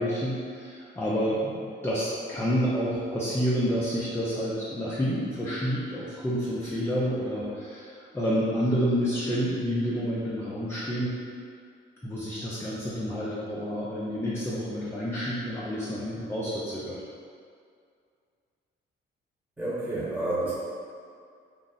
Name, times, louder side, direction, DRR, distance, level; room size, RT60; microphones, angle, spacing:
voice 1, 0.0-11.2 12.0-17.0, equal, 10° left, -8 dB, 0.5 m, -29 dB
voice 2, 19.6-20.5, right 2 dB, 10° right, -9 dB, 1.2 m, -29 dB
2.6 x 2.0 x 3.8 m, 2.2 s
cardioid pair, 90°, 20 cm